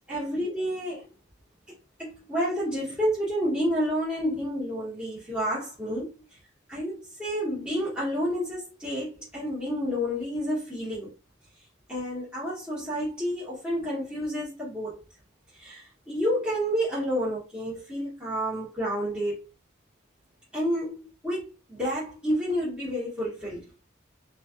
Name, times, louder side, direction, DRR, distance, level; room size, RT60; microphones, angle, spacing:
voice 1, 0.1-1.0 1.7-6.1 6.7-11.1 11.9-15.0 15.5-19.5 20.5-23.6, equal, 5° right, 1.1 m, -30 dB
2.5 x 2.4 x 2.3 m
head